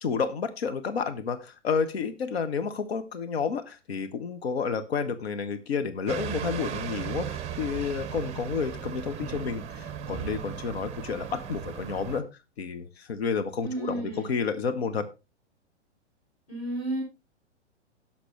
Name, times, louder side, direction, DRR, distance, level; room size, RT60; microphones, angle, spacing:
voice 1, 0.0-12.3 12.6-15.0, left 5 dB, 60° left, 9 dB, 1.2 m, -30 dB
sound 1, 6.1-12.2, right 8 dB, 20° right, 0.9 m, -36 dB
voice 2, 13.6-14.3 16.5-17.0, right 2 dB, 30° left, -2 dB, 7.6 m, -32 dB
17.5 x 6.0 x 3.2 m, 0.27 s
figure-of-eight pair, 105°, 36 cm